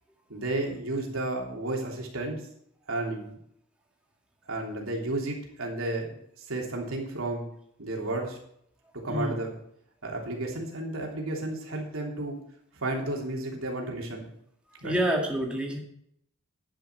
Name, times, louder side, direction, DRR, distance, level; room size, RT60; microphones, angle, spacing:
voice 1, 0.3-2.4 2.9-3.4 4.5-7.5 7.8-8.4 9.0-9.5 10.0-12.4 12.8-14.3 14.8-15.0, right 2 dB, 85° right, 0 dB, 3.4 m, -32 dB
voice 2, 9.1-9.4 14.8-15.8, right 1 dB, 5° right, -1 dB, 2.1 m, -27 dB
10.5 x 10.5 x 4.6 m, 0.71 s
head